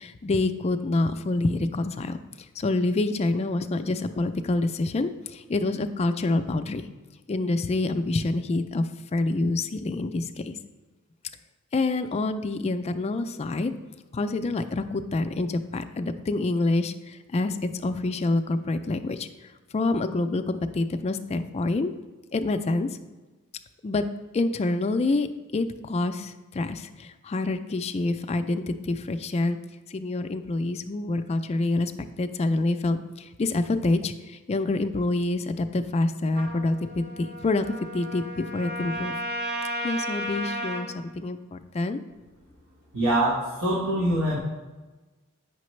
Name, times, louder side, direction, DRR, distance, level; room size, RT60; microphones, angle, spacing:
voice 1, 0.0-2.2 2.6-6.8 7.3-10.6 11.7-13.7 14.1-19.3 19.7-21.9 22.3-22.9 23.8-24.0 24.3-25.3 25.5-29.6 29.9-31.9 32.2-39.2 39.8-42.0, left 2 dB, 30° left, 8 dB, 0.3 m, -27 dB
Trumpet, 36.3-40.9, equal, 45° right, 1.0 m, -34 dB
voice 2, 42.9-44.4, right 1 dB, 65° right, -6 dB, 1.4 m, -24 dB
8.5 x 5.9 x 3.2 m, 1.2 s
head